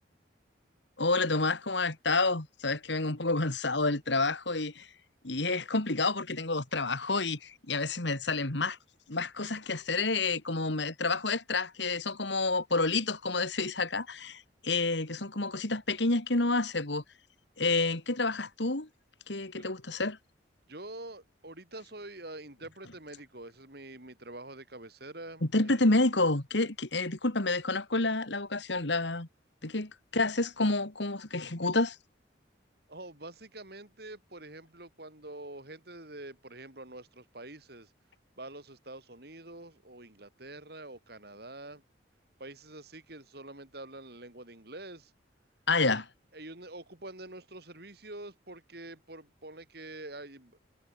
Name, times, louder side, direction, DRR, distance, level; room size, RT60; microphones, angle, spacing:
voice 1, 1.0-4.9 5.2-8.8 9.1-17.0 17.6-18.9 19.3-20.2 25.5-29.3 29.6-32.0 45.7-46.0, left 3 dB, 70° left, 2.4 m, -29 dB
voice 2, 20.7-25.8 32.9-37.9 38.4-41.8 42.4-45.1 45.8-46.0 46.3-50.6, right 2 dB, 55° right, 4.1 m, -46 dB
head